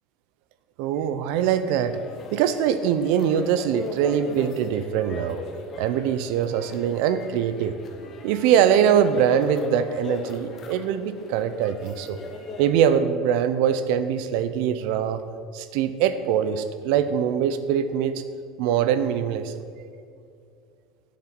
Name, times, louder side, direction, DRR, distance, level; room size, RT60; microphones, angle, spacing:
voice 1, 0.8-2.0 2.3-5.4 5.8-7.8 8.2-12.2 12.6-15.2 15.5-18.2 18.6-19.6, right 8 dB, 70° right, 12 dB, 0.7 m, -23 dB
sound 1, 1.3-12.7, left 3 dB, 35° left, 1.2 m, -38 dB
9.2 x 7.5 x 6.1 m, 2.3 s
cardioid pair, 145°, 0 cm